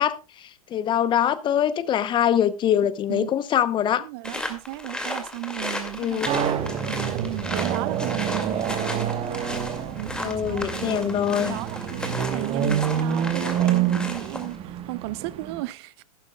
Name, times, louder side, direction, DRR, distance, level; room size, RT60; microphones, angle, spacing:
voice 1, 0.0-4.0 6.0-6.3 10.2-11.6, left 10 dB, 25° left, 0.8 m, -23 dB
voice 2, 4.0-6.2 6.9-9.1 10.0-11.1 11.5-15.9, right 18 dB, 45° right, 0.5 m, -34 dB
sound 1, 4.2-14.6, left 1 dB, 5° left, 2.2 m, -34 dB
sound 2, 6.2-15.6, right 9 dB, 30° right, 1.2 m, -27 dB
13.5 x 12.0 x 2.3 m
hypercardioid pair, 100°, 18 cm